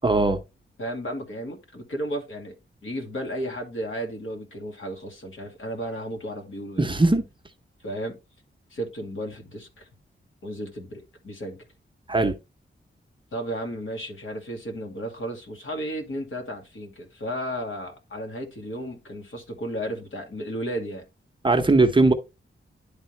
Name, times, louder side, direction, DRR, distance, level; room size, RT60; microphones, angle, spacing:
voice 1, 0.0-0.4 6.8-7.2 12.1-12.3 21.4-22.1, right 2 dB, 25° right, 0.7 m, -19 dB
voice 2, 0.8-2.5 2.8-6.8 7.8-8.2 8.7-9.9 10.4-11.7 13.3-21.1, equal, 70° left, 2.2 m, -33 dB
11.0 x 3.7 x 3.1 m
wide cardioid pair, 150°, 21 cm